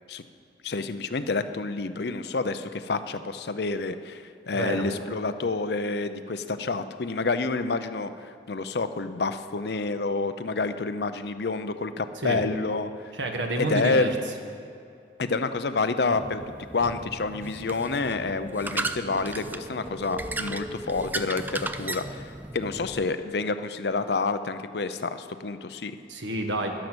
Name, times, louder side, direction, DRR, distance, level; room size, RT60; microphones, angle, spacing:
voice 1, 0.6-12.9 13.6-14.1 15.2-16.4 16.7-25.9, left 3 dB, 60° left, 10 dB, 0.6 m, -28 dB
voice 2, 4.5-4.9 12.2-12.4 13.1-14.1 26.1-26.8, right 1 dB, 85° right, 3 dB, 1.5 m, -29 dB
sound 1, 16.1-23.0, right 2 dB, 10° right, 0.3 m, -35 dB
12.5 x 10.5 x 6.2 m, 2.5 s
head